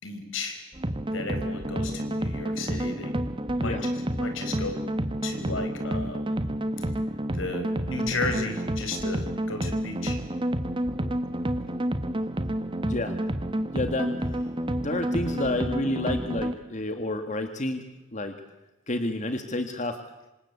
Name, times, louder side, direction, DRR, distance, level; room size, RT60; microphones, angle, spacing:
voice 1, 0.0-0.6 1.1-3.2 3.6-4.8 5.2-6.4 6.8-6.9 7.3-10.2, left 3 dB, 75° left, 7 dB, 4.9 m, -34 dB
sound 1, 0.7-16.5, right 1 dB, 25° right, 1.3 m, -29 dB
voice 2, 12.8-13.1 13.7-14.2 14.8-17.8 18.1-18.4 18.9-20.0, left 1 dB, 35° left, 7 dB, 1.8 m, -29 dB
26.5 x 26.0 x 8.4 m, 0.95 s
head